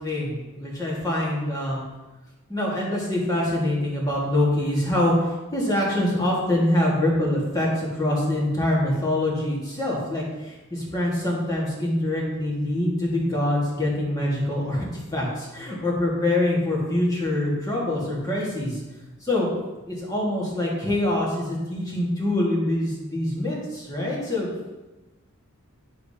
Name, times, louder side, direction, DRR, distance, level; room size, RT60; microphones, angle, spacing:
voice 1, 0.0-1.8 2.5-14.9 15.1-18.8 19.2-19.5 19.9-24.5, left 1 dB, 15° left, -5 dB, 1.7 m, -24 dB
11.0 x 4.9 x 2.8 m, 1.1 s
head